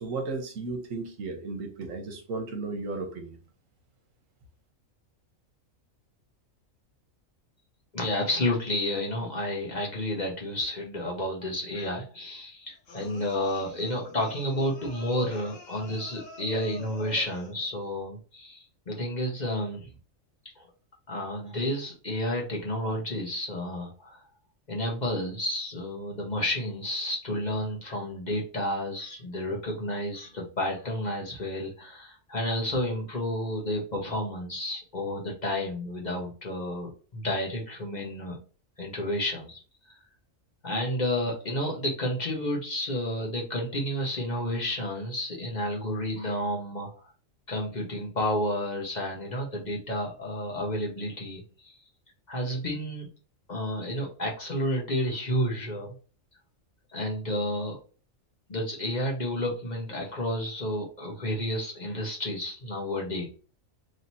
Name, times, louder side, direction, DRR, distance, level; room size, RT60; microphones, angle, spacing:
voice 1, 0.0-3.4, right 3 dB, 75° right, 4 dB, 1.2 m, -34 dB
voice 2, 7.9-19.9 20.6-20.7 21.1-24.2 24.7-38.4 38.8-39.6 40.6-47.1 47.5-51.8 52.3-53.1 53.5-55.9 56.9-57.8 58.5-63.5, left 1 dB, 40° left, -1 dB, 0.9 m, -31 dB
sound 1, 12.9-17.7, left 2 dB, 70° left, 1.3 m, -46 dB
3.1 x 2.8 x 4.0 m, 0.37 s
omnidirectional pair, 1.4 m